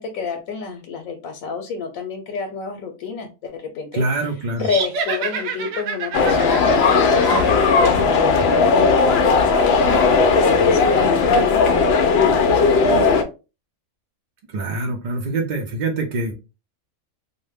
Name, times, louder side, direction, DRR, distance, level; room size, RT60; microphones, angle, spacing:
voice 1, 0.0-13.2, left 6 dB, 90° left, 4 dB, 1.0 m, -29 dB
voice 2, 3.9-4.7 14.5-16.3, right 2 dB, 55° right, 1 dB, 0.5 m, -24 dB
sound 1, 4.6-8.0, right 5 dB, 85° right, 1.1 m, -29 dB
sound 2, 6.1-13.2, left 4 dB, 65° left, 0.7 m, -16 dB
2.6 x 2.1 x 3.3 m, 0.29 s
omnidirectional pair, 1.4 m